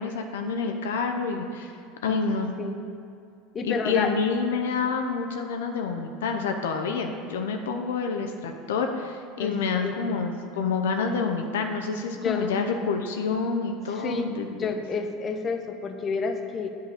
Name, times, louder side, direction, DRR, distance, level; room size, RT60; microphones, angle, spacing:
voice 1, 0.0-1.7 2.0-2.6 3.6-14.8, left 5 dB, 80° left, 4 dB, 0.6 m, -28 dB
voice 2, 3.5-4.1 9.4-9.9 12.2-12.6 13.9-16.7, left 4 dB, 35° left, 6 dB, 0.7 m, -30 dB
8.1 x 3.9 x 6.6 m, 2.4 s
hypercardioid pair, 80°, 0 cm